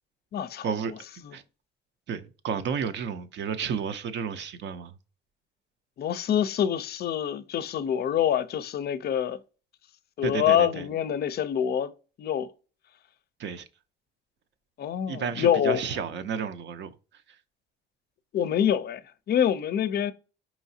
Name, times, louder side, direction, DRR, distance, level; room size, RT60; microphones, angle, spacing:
voice 1, 0.3-0.7 6.0-9.4 10.2-11.9 12.2-12.5 14.8-15.9 18.3-19.0 19.3-20.1, left 9 dB, 55° left, 0.4 m, -26 dB
voice 2, 2.1-5.0 10.2-10.8 13.4-13.7 15.1-17.4, right 7 dB, 65° right, 0.5 m, -32 dB
4.8 x 3.0 x 2.7 m
cardioid pair, 90°, 20 cm